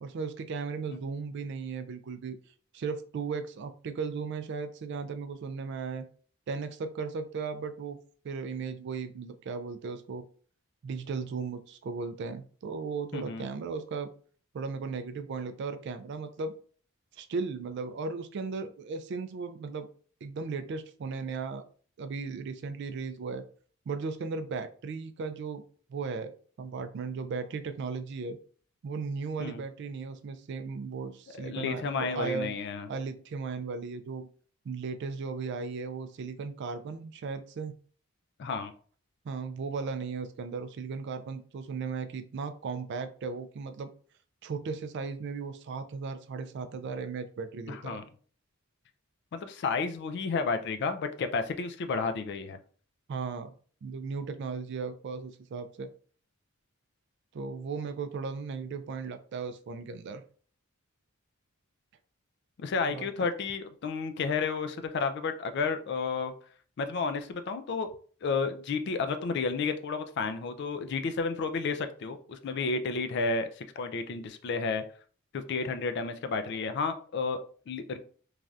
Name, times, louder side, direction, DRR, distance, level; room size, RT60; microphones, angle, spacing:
voice 1, 0.0-2.4 2.7-6.1 6.5-8.0 8.2-10.2 10.8-14.1 14.5-16.5 17.2-19.9 20.2-21.6 22.0-23.5 23.9-25.6 25.9-28.4 28.8-32.5 32.9-34.3 34.7-37.7 39.2-43.9 44.4-48.0 53.1-53.5 53.8-55.9 57.3-60.2 62.9-63.1, right 5 dB, 55° right, 9 dB, 0.3 m, -36 dB
voice 2, 13.1-13.5 29.4-29.6 31.3-32.9 38.4-38.7 47.7-48.0 49.3-52.6 62.6-66.3 66.8-67.9 68.2-74.8 75.3-78.0, left 4 dB, 50° left, 9 dB, 0.3 m, -31 dB
3.2 x 2.6 x 2.4 m, 0.43 s
head